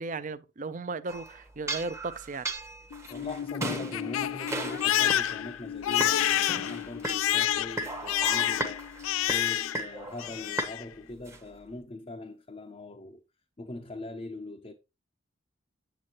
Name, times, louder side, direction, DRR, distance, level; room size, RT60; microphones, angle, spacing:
voice 1, 0.0-2.5, right 3 dB, 40° right, 0.5 m, -35 dB
sound 1, 1.1-5.4 5.8-7.3 7.7-10.8 11.1-11.4, right 2 dB, 15° right, 0.9 m, -37 dB
Crying sobbing, 2.9-9.9 10.2-10.8, left 12 dB, 80° left, 0.3 m, -29 dB
voice 2, 3.1-13.2 13.6-14.7, left 2 dB, 30° left, 0.5 m, -41 dB
8.0 x 7.5 x 2.9 m
head